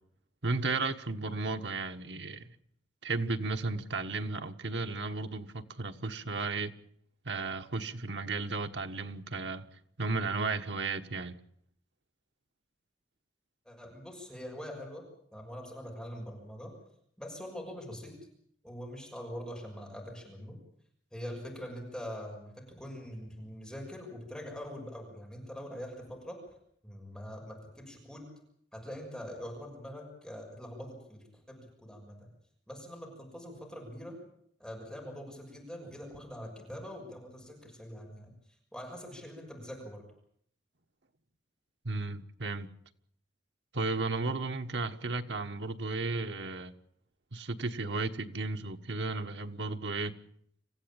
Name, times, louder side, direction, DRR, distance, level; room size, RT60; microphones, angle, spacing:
voice 1, 0.4-2.5 3.0-6.7 7.2-9.7 10.0-11.4 41.8-42.7 43.7-46.7 47.3-50.1, right 3 dB, 75° right, 1.4 m, -34 dB
voice 2, 13.6-15.0 15.3-16.7 17.2-18.1 18.6-20.6 21.1-26.4 26.8-28.2 28.7-32.3 32.7-34.2 34.6-38.3 38.7-40.0, equal, 5° left, 6.3 m, -43 dB
27.0 x 15.0 x 8.9 m
head